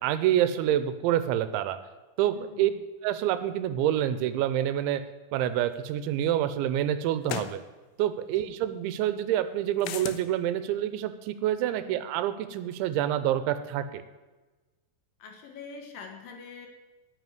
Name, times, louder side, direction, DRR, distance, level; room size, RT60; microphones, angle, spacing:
voice 1, 0.0-1.8 2.2-2.7 3.0-5.0 5.3-7.6 8.0-14.0, right 11 dB, 85° right, 12 dB, 3.1 m, -27 dB
voice 2, 2.3-2.8 8.4-8.5 11.8-12.0 15.2-16.7, left 5 dB, 65° left, 4 dB, 2.3 m, -45 dB
sound 1, 5.9-6.0 7.2-7.6 9.8-10.2, left 11 dB, 90° left, 2.2 m, -34 dB
9.2 x 8.9 x 9.7 m, 1.2 s
omnidirectional pair, 5.3 m